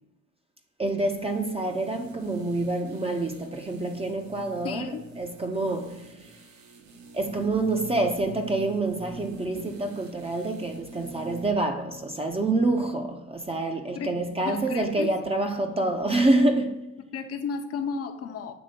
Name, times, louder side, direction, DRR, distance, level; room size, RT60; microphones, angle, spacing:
voice 1, 0.8-6.3 7.1-16.9, right 2 dB, 20° right, 0.5 m, -27 dB
sound 1, 1.0-11.6 11.9-12.0, right 3 dB, 65° right, 1.0 m, -45 dB
voice 2, 4.6-5.1 13.9-14.2 14.4-15.1 17.1-18.5, left 5 dB, 50° left, 0.7 m, -33 dB
6.9 x 3.3 x 5.1 m
cardioid pair, 90°, 30 cm